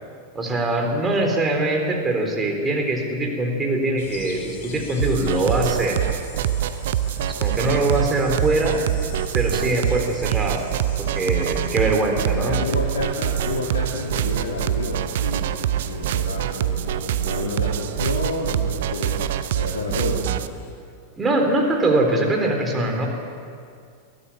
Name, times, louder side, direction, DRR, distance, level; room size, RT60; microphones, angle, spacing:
voice 1, 0.3-6.0 7.4-8.8 9.3-10.7 11.0-12.6 21.2-23.1, right 2 dB, 15° right, 2 dB, 3.9 m, -22 dB
sound 1, 4.0-20.7, left 4 dB, 50° left, 5.3 m, -42 dB
sound 2, 5.0-20.5, right 12 dB, 55° right, 0.7 m, -25 dB
voice 2, 7.3-8.0 11.7-12.0 12.4-20.3, left 2 dB, 70° left, -4 dB, 2.8 m, -30 dB
21.5 x 14.0 x 9.0 m, 2.3 s
figure-of-eight pair, 90°, 0 cm